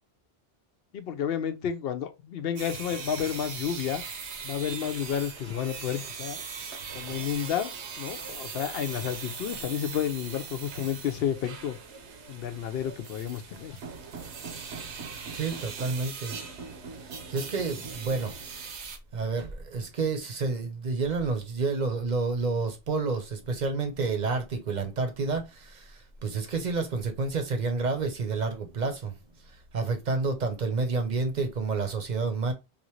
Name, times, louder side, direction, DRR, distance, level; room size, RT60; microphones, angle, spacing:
voice 1, 0.9-4.0 4.4-6.4 6.9-7.7 8.0-11.8 12.3-13.8, left 9 dB, 65° left, 0.7 m, -31 dB
sound 1, 2.6-19.0, right 5 dB, 80° right, 1.1 m, -40 dB
voice 2, 15.3-16.4 17.0-18.4 19.1-29.1 29.5-32.5, right 4 dB, 45° right, 0.8 m, -29 dB
3.4 x 2.5 x 3.0 m
omnidirectional pair, 1.1 m